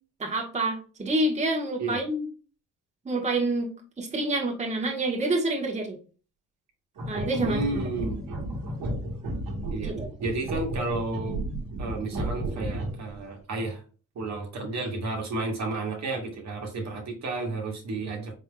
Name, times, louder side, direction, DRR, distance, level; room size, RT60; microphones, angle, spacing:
voice 1, 0.2-2.3 3.0-3.7 4.0-6.0 7.1-7.6 9.8-10.1, right 2 dB, 20° right, -1 dB, 1.2 m, -27 dB
sound 1, 7.0-13.1, right 1 dB, 85° right, 1.3 m, -33 dB
voice 2, 7.4-8.2 9.7-9.9 10.2-11.4 11.8-13.8 14.1-18.3, right 3 dB, 55° right, 1 dB, 1.4 m, -32 dB
4.4 x 3.5 x 2.2 m, 0.36 s
cardioid pair, 80°, 33 cm